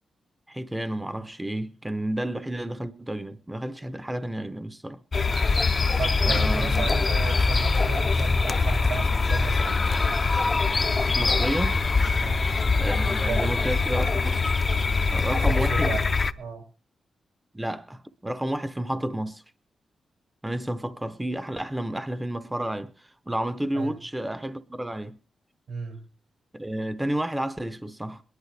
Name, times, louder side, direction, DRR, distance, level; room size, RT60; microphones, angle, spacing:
voice 1, 0.5-5.0 6.3-6.9 11.1-11.8 12.8-14.4 15.1-16.0 17.5-19.4 20.4-25.2 26.5-28.2, right 1 dB, 10° right, 0.7 m, -31 dB
sound 1, 5.1-16.3, left 4 dB, 30° left, 0.6 m, -23 dB
voice 2, 6.0-10.1 12.2-12.5 13.0-13.7 15.3-16.1 16.4-16.6 23.7-24.0 25.7-26.0, right 5 dB, 90° right, 5.9 m, -34 dB
22.0 x 11.0 x 3.3 m
wide cardioid pair, 130°, 0 cm